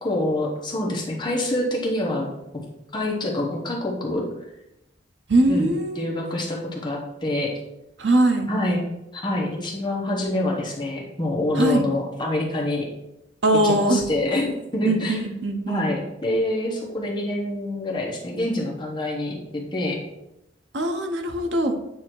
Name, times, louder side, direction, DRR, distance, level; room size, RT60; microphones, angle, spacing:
voice 1, 0.0-2.3 2.9-4.2 5.5-5.7 5.9-7.5 8.5-8.9 9.1-12.9 13.6-15.2 15.7-20.0, left 1 dB, 25° left, -2 dB, 1.1 m, -26 dB
voice 2, 5.3-6.1 8.0-8.5 11.6-11.9 13.4-14.0 14.8-15.9 20.7-21.8, right 1 dB, 75° right, 6 dB, 0.8 m, -21 dB
8.2 x 2.8 x 4.5 m, 0.88 s
head